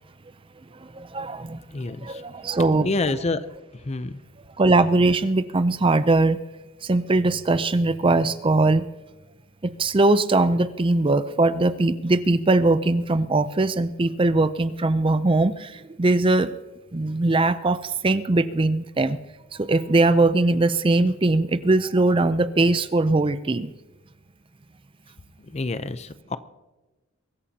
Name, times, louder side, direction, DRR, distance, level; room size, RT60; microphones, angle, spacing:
voice 1, 0.8-2.9 4.6-6.4 6.8-8.8 9.6-16.5 16.9-19.2 19.5-23.7, right 2 dB, 25° right, 13 dB, 0.5 m, -21 dB
voice 2, 1.7-2.2 2.8-3.4 3.8-4.2 25.5-26.4, left 3 dB, 30° left, 13 dB, 0.6 m, -27 dB
23.5 x 14.0 x 2.8 m, 1.1 s
head